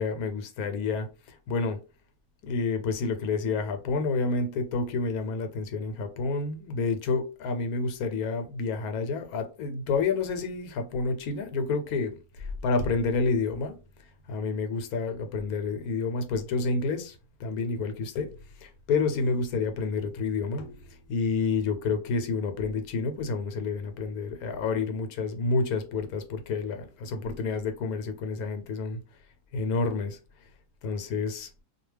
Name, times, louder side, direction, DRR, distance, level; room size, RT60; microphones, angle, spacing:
voice 1, 0.0-1.8 2.4-13.8 14.3-29.0 29.5-30.2 30.8-31.5, left 4 dB, 80° left, 1.0 m, -29 dB
2.4 x 2.2 x 3.2 m
omnidirectional pair, 1.5 m